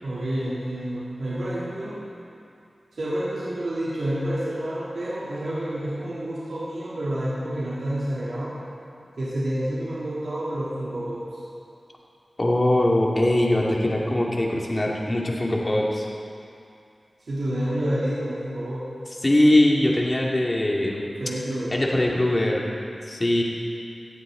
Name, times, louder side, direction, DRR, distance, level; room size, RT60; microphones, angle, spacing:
voice 1, 0.0-2.0 2.9-8.5 9.2-11.4 17.3-18.9 21.2-21.7, right 1 dB, 75° right, -9 dB, 3.2 m, -29 dB
voice 2, 12.4-16.1 19.2-21.1 21.7-22.7 23.1-23.4, left 1 dB, 30° left, -2 dB, 2.4 m, -21 dB
18.0 x 15.0 x 4.0 m, 2.5 s
wide cardioid pair, 75°, 0 cm